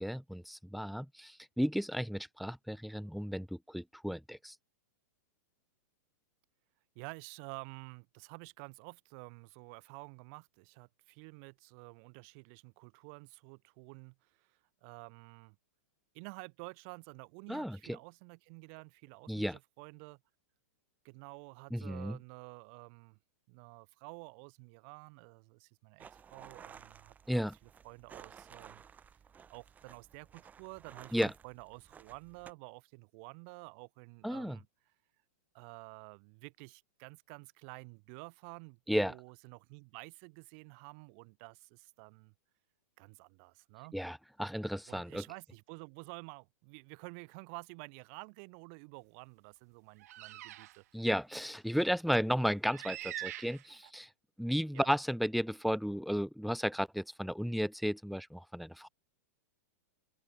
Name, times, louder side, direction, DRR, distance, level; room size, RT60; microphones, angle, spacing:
voice 1, 0.0-4.5 17.5-18.0 19.3-19.6 21.7-22.2 27.3-27.5 31.1-31.3 34.2-34.6 38.9-39.1 43.9-45.2 50.9-54.1 54.4-58.9, equal, ahead, 1.6 m, -34 dB
voice 2, 7.0-15.6 16.1-20.2 21.0-23.2 23.5-27.1 27.8-28.8 29.5-34.7 35.5-42.3 43.0-44.0 44.9-50.8 54.7-54.9, right 39 dB, 45° right, 3.9 m, -50 dB
sound 1, 26.0-32.5, right 7 dB, 20° right, 2.9 m, -55 dB
sound 2, 50.0-50.8 51.4-51.5 52.7-53.9, right 15 dB, 65° right, 1.2 m, -44 dB
open air
hypercardioid pair, 130°, 9 cm